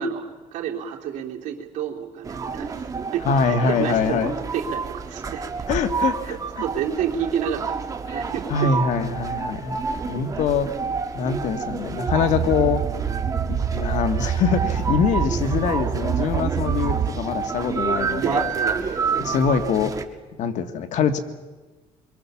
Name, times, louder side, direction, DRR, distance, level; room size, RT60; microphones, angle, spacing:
voice 1, 0.0-5.5 6.2-8.7 18.2-19.1, right 8 dB, 80° right, 0 dB, 3.5 m, -30 dB
sound 1, 2.2-20.0, right 5 dB, 25° right, 1.8 m, -29 dB
voice 2, 3.3-4.3 5.7-6.4 8.1-8.2 8.5-10.7 11.1-12.8 13.5-18.5 19.2-20.0 20.4-21.2, left 6 dB, 70° left, 8 dB, 1.8 m, -24 dB
sound 2, 12.1-17.1, right 8 dB, 45° right, 1.6 m, -26 dB
25.5 x 23.0 x 7.2 m, 1.2 s
cardioid pair, 135°, 13 cm